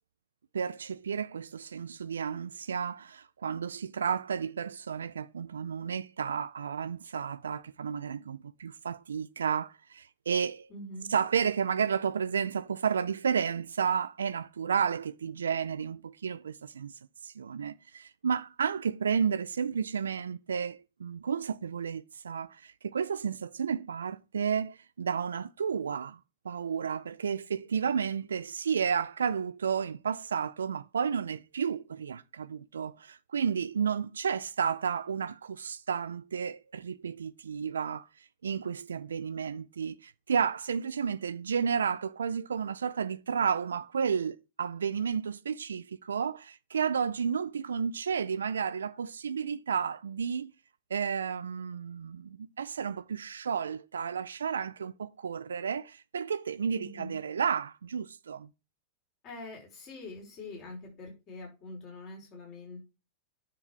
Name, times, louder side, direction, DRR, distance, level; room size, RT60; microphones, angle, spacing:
voice 1, 0.5-10.7 11.1-26.2 26.4-38.1 38.4-50.5 50.9-58.5, right 7 dB, 70° right, 0.5 m, -32 dB
voice 2, 10.7-11.1 56.7-57.1 59.2-62.8, left 2 dB, 40° left, 5.6 m, -44 dB
10.5 x 6.8 x 6.2 m
figure-of-eight pair, 90°, 0 cm